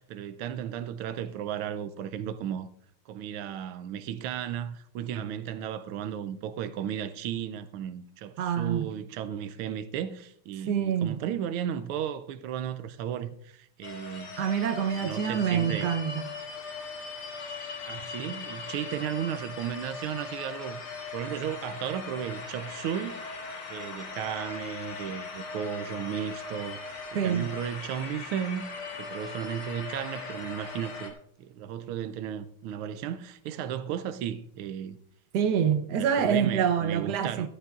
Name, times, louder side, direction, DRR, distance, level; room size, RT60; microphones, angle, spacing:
voice 1, 0.0-2.7 3.1-14.4 14.9-16.0 17.8-23.2 23.7-28.7 29.0-35.0 36.0-37.5, right 9 dB, 85° right, 1.5 m, -35 dB
voice 2, 8.4-8.9 10.7-11.2 14.4-16.3 27.1-27.5 35.3-37.5, right 8 dB, 60° right, 1.3 m, -26 dB
sound 1, 13.8-31.1, left 4 dB, 75° left, 2.6 m, -39 dB
15.0 x 13.0 x 2.4 m
omnidirectional pair, 2.3 m